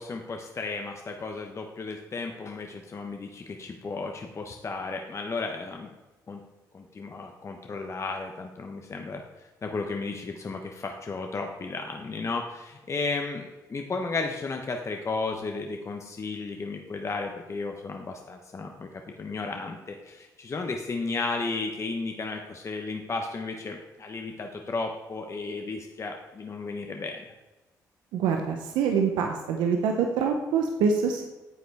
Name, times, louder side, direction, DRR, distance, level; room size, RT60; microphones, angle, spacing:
voice 1, 0.0-5.9 6.3-6.4 6.7-9.2 9.6-18.9 19.2-27.3, left 3 dB, 40° left, 3 dB, 1.0 m, -34 dB
voice 2, 28.1-31.2, right 6 dB, 90° right, 3 dB, 0.7 m, -25 dB
9.5 x 7.9 x 3.5 m, 1.1 s
supercardioid pair, 65°, 8 cm